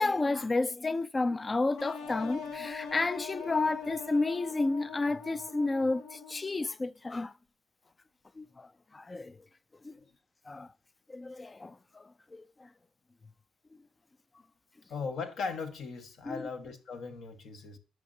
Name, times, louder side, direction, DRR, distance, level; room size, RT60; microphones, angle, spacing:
voice 1, 0.0-7.3 8.4-9.4 9.8-10.0 10.5-10.7 11.1-12.7 16.2-16.4, left 3 dB, 25° left, 0.3 m, -31 dB
sound 1, 1.8-6.6, left 5 dB, 90° left, 1.3 m, -42 dB
voice 2, 14.9-17.8, left 4 dB, 65° left, 1.3 m, -38 dB
9.5 x 6.4 x 2.7 m
cardioid pair, 90°, 0 cm